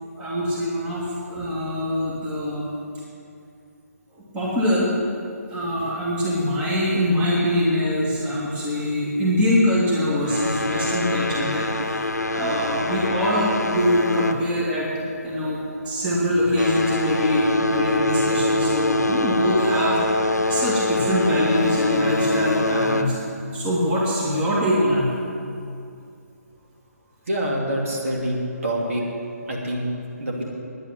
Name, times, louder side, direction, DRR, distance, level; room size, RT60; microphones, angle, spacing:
voice 1, 0.2-2.7 4.3-4.9 5.5-14.9 15.2-15.6 15.9-23.2 23.5-25.1, equal, 15° right, -6 dB, 2.3 m, -23 dB
sound 1, 10.2-15.1 15.4-15.8 16.3-23.4, left 2 dB, 80° left, 0.9 m, -24 dB
voice 2, 27.3-29.0 29.5-29.9 30.2-30.4, right 1 dB, 55° right, -2 dB, 2.7 m, -26 dB
10.0 x 8.9 x 9.6 m, 2.5 s
figure-of-eight pair, 145°, 9 cm